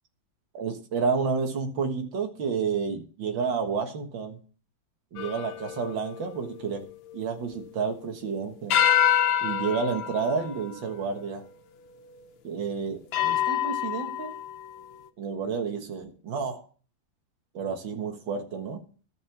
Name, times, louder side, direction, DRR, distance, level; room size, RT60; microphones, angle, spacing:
voice 1, 0.5-4.4 5.1-6.9 7.1-8.8 9.4-11.4 12.4-14.3 15.2-16.7 17.5-18.8, right 5 dB, 80° right, 4 dB, 2.3 m, -30 dB
sound 1, 5.2-8.1 8.7-11.4 12.1-12.2 13.1-14.7, left 10 dB, 80° left, 1.6 m, -28 dB
13.5 x 5.4 x 7.1 m, 0.39 s
omnidirectional pair, 2.0 m